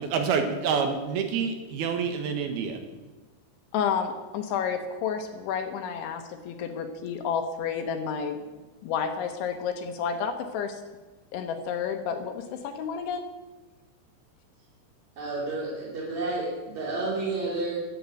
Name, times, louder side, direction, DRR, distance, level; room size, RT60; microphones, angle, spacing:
voice 1, 0.0-2.8, right 6 dB, 70° right, 6 dB, 2.6 m, -27 dB
voice 2, 3.7-8.4 8.8-10.8 11.3-13.3, left 7 dB, 75° left, 5 dB, 3.2 m, -30 dB
voice 3, 15.2-17.7, right 2 dB, 40° right, -7 dB, 4.1 m, -30 dB
14.5 x 9.3 x 8.2 m, 1.2 s
omnidirectional pair, 5.7 m